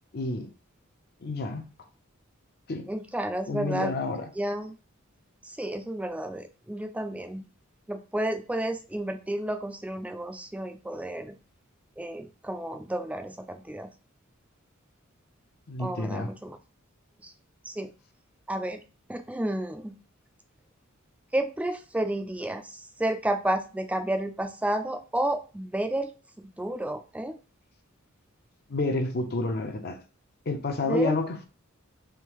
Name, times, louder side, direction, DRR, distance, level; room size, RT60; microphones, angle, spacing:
voice 1, 0.1-0.5 1.2-1.6 2.7-2.9 3.5-4.2 15.7-16.3 28.7-30.0 30.5-31.5, left 3 dB, 50° left, 0.6 m, -29 dB
voice 2, 2.9-3.9 4.4-4.7 5.6-7.4 7.9-11.3 12.0-13.9 15.8-16.6 17.7-17.9 18.5-18.8 19.1-19.9 21.3-22.6 23.0-26.1 26.6-27.4 30.8-31.2, right 1 dB, 5° right, 0.3 m, -31 dB
3.6 x 2.6 x 3.0 m
head